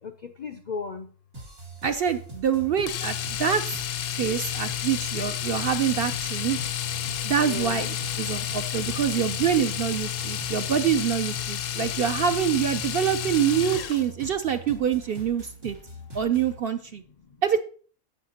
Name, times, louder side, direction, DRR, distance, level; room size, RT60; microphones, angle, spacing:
voice 1, 0.0-1.1 4.1-4.2 4.7-5.0 5.4-10.7 11.5-12.0 14.2-14.7 15.3-16.1 16.9-17.4, left 5 dB, 55° left, 6 dB, 0.5 m, -43 dB
sound 1, 1.3-16.6, right 1 dB, 85° right, 3.7 m, -43 dB
voice 2, 1.8-3.1 3.4-3.6 4.0-6.6 7.2-15.8 16.1-17.0 17.4-17.6, right 8 dB, 60° right, 8 dB, 0.6 m, -25 dB
Domestic sounds home sounds, 2.9-14.1 16.2-16.4 16.7-16.8, left 11 dB, 75° left, 1.0 m, -31 dB
15.5 x 5.7 x 2.9 m, 0.42 s
omnidirectional pair, 1.4 m